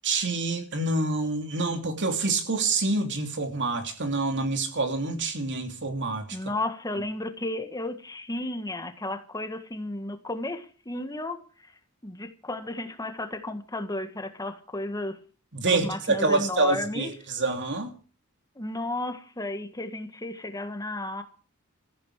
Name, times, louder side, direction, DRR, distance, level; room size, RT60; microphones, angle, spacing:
voice 1, 0.0-6.3 15.5-17.9, right 3 dB, 55° right, 3.0 m, -27 dB
voice 2, 6.3-11.4 12.0-15.2 15.7-17.1 18.5-21.2, left 1 dB, 15° left, 1.7 m, -33 dB
16.5 x 15.0 x 4.9 m
head